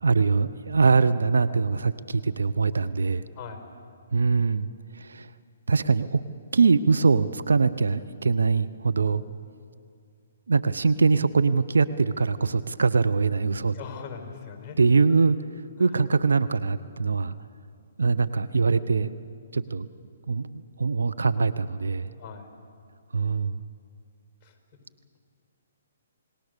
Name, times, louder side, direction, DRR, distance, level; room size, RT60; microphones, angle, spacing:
voice 1, 0.0-3.2 4.1-4.7 5.0-5.3 5.7-6.2 6.5-9.2 10.5-13.7 14.8-15.4 15.8-17.3 18.0-19.1 19.5-19.9 20.3-22.1 23.1-23.6, right 4 dB, 85° right, 13 dB, 0.8 m, -23 dB
voice 2, 13.7-14.8 15.8-15.9 22.2-22.5 24.4-24.5, left 6 dB, 20° left, 4 dB, 4.9 m, -40 dB
29.0 x 18.5 x 6.8 m, 2.4 s
hypercardioid pair, 145°, 0 cm